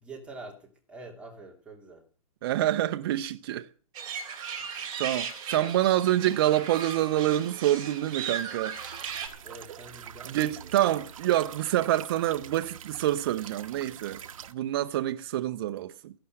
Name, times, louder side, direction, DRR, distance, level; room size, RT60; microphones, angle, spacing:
voice 1, 0.0-2.0 4.6-5.0 5.5-5.7 9.4-10.7, right 2 dB, 5° right, 2.9 m, -46 dB
voice 2, 2.4-3.7 5.0-8.8 10.3-14.2 14.5-16.1, right 13 dB, 40° right, 0.7 m, -27 dB
sound 1, 3.9-9.3, right 7 dB, 20° right, 3.5 m, -37 dB
sound 2, 8.7-14.5, right 9 dB, 60° right, 1.3 m, -44 dB
15.0 x 12.0 x 7.7 m
hypercardioid pair, 160°, 19 cm